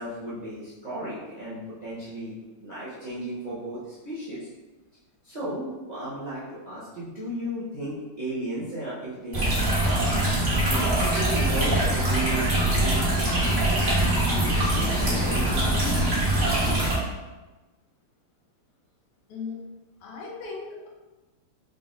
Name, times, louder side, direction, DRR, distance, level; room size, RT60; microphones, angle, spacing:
voice 1, 0.0-4.5 5.2-10.2 10.7-15.7, right 1 dB, 85° right, -10 dB, 0.3 m, -35 dB
sound 1, 9.3-17.0, right 1 dB, 40° right, 1.5 m, -23 dB
voice 2, 19.3-19.6 20.0-20.9, left 4 dB, 85° left, -3 dB, 1.8 m, -37 dB
5.3 x 3.5 x 2.5 m, 1.2 s
omnidirectional pair, 2.4 m